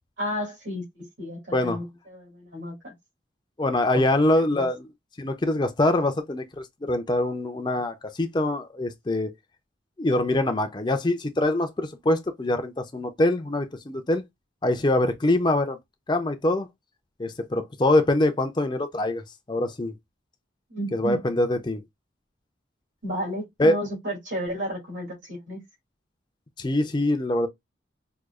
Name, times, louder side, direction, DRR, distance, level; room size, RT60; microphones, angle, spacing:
voice 1, 0.2-2.9 3.9-4.0 4.6-4.7 20.7-21.2 23.0-25.6, equal, 75° right, 2.5 m, -32 dB
voice 2, 3.6-4.9 5.2-9.3 10.0-14.2 14.6-15.8 16.1-16.7 17.2-19.2 19.5-19.9 20.9-21.8 23.6-23.7 26.6-27.5, left 1 dB, 25° left, 0.5 m, -24 dB
4.7 x 2.4 x 2.3 m
head